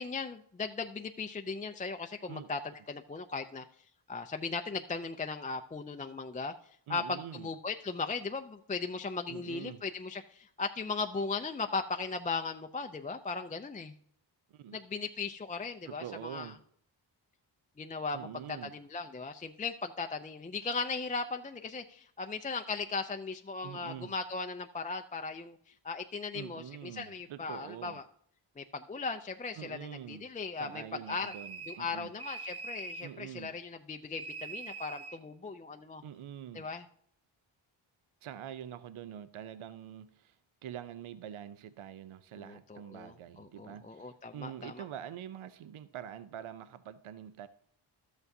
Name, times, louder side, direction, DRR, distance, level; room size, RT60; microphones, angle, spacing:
voice 1, 0.0-3.6 4.1-6.6 6.9-14.0 14.7-16.5 17.8-28.0 28.6-31.3 31.7-36.0 36.5-36.8 42.4-44.8, left 4 dB, 15° left, 6 dB, 0.4 m, -38 dB
voice 2, 6.9-7.5 9.3-9.8 14.5-14.8 15.9-16.6 18.1-18.7 23.6-24.1 26.3-28.0 29.6-30.3 30.5-32.1 33.0-33.5 36.0-36.7 38.2-47.5, right 10 dB, 75° right, 13 dB, 0.6 m, -45 dB
sound 1, 31.1-31.9 32.2-33.1 34.1-35.2, right 3 dB, 30° right, 0.8 m, -43 dB
12.5 x 8.1 x 2.7 m, 0.65 s
cardioid pair, 60°, 50 cm